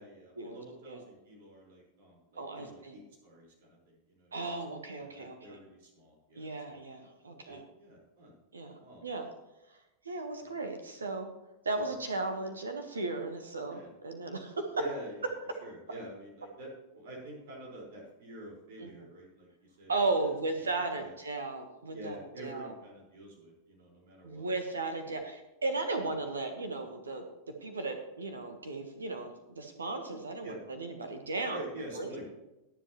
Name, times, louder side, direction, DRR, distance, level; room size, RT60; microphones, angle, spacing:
voice 1, 0.0-6.8 7.3-8.3 8.8-9.0 10.4-10.6 11.8-11.9 13.7-13.9 14.8-15.3 15.6-19.9 20.9-21.1 21.9-24.5 25.1-25.2 30.4-30.6 31.5-32.3, right 1 dB, 55° right, -1 dB, 5.0 m, -47 dB
voice 2, 2.3-3.0 4.3-5.6 6.4-7.6 8.5-9.3 10.0-11.3 11.6-13.8 14.0-14.7 18.8-18.9 19.9-22.7 24.2-27.2 27.6-31.6 32.0-32.1, right 3 dB, 75° right, 6 dB, 1.4 m, -35 dB
22.0 x 7.5 x 3.1 m, 1.0 s
figure-of-eight pair, 90°, 0 cm